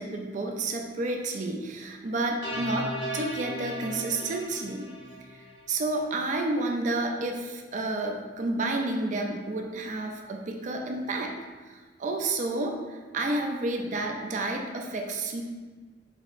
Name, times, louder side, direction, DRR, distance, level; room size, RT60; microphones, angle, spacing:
voice 1, 0.0-4.9 5.3-11.3 11.7-15.4, right 2 dB, 45° right, 3 dB, 0.4 m, -30 dB
sound 1, 2.4-5.7, equal, 85° left, 1.1 m, -36 dB
4.9 x 2.9 x 2.5 m, 1.4 s
head